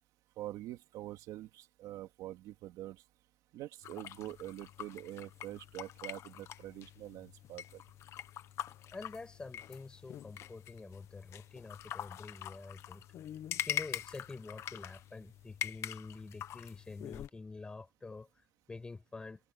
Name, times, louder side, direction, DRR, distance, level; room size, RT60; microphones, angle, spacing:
voice 1, 0.4-3.0 3.5-7.8, right 15 dB, 60° right, 2.6 m, -45 dB
sound 1, 3.8-17.3, left 11 dB, 45° left, 1.0 m, -44 dB
voice 2, 8.9-13.0 13.7-18.3 18.7-19.4, left 3 dB, 15° left, 6.7 m, -47 dB
cardioid pair, 175°, 7 cm